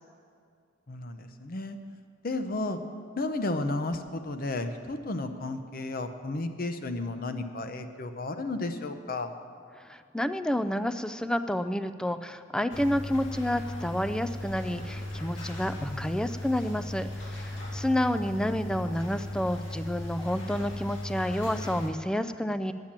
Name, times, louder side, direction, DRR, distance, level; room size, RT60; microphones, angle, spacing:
voice 1, 0.9-1.8 2.2-2.8 3.2-9.3 15.9-16.1, left 2 dB, 50° left, 8 dB, 0.7 m, -33 dB
voice 2, 9.8-22.7, left 1 dB, 5° left, 11 dB, 0.3 m, -30 dB
sound 1, 12.7-21.9, left 1 dB, 75° left, 1.9 m, -37 dB
10.5 x 8.9 x 7.3 m, 2.3 s
head